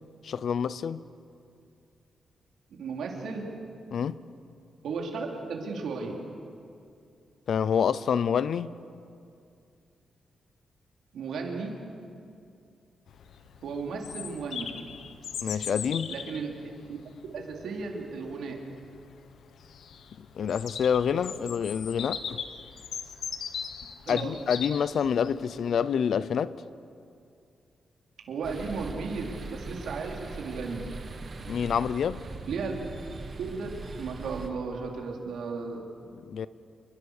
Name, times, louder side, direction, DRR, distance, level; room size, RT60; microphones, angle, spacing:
voice 1, 0.2-1.0 3.9-4.2 7.5-8.7 15.4-16.1 20.2-22.4 24.1-26.5 31.5-32.2 36.1-36.5, left 7 dB, 60° left, 17 dB, 0.6 m, -27 dB
voice 2, 2.8-3.5 4.8-6.2 11.1-11.8 13.6-14.8 16.1-17.0 17.3-18.6 24.0-24.4 28.3-30.9 32.5-32.8 33.4-35.8, right 4 dB, 80° right, 1 dB, 3.8 m, -35 dB
Bird vocalization bird call bird song, 13.1-25.8, left 7 dB, 80° left, 1.4 m, -40 dB
sound 1, 28.4-34.5, right 3 dB, 35° right, 1.8 m, -41 dB
29.0 x 22.5 x 6.7 m, 2.4 s
wide cardioid pair, 175°, 0 cm